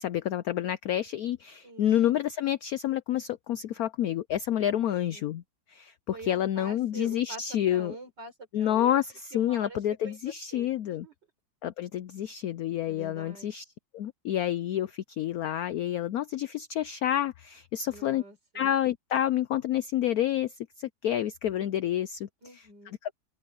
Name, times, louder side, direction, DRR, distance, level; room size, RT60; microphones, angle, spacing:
voice 1, 0.0-5.4 5.7-8.0 8.5-11.1 11.6-13.6 13.9-18.2 18.5-22.3 23.0-23.1, left 11 dB, 75° left, 0.8 m, -29 dB
voice 2, 1.6-1.9 4.6-5.3 6.1-9.0 9.3-11.1 12.8-13.5 17.9-18.7 22.4-23.0, right 3 dB, 60° right, 6.2 m, -46 dB
omnidirectional pair, 2.1 m